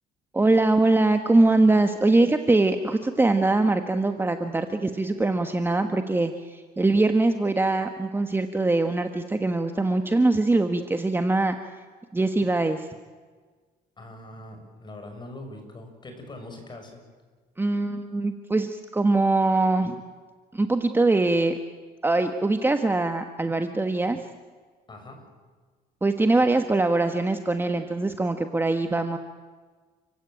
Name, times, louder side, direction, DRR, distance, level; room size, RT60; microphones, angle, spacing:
voice 1, 0.3-11.6 12.1-12.9 17.6-20.0 20.5-21.6 22.0-24.2 26.0-29.2, right 2 dB, 15° right, 7 dB, 1.3 m, -22 dB
voice 2, 14.0-17.0 24.9-25.2, left 1 dB, 25° left, 4 dB, 6.8 m, -42 dB
29.5 x 16.0 x 9.1 m, 1.5 s
cardioid pair, 110°, 17 cm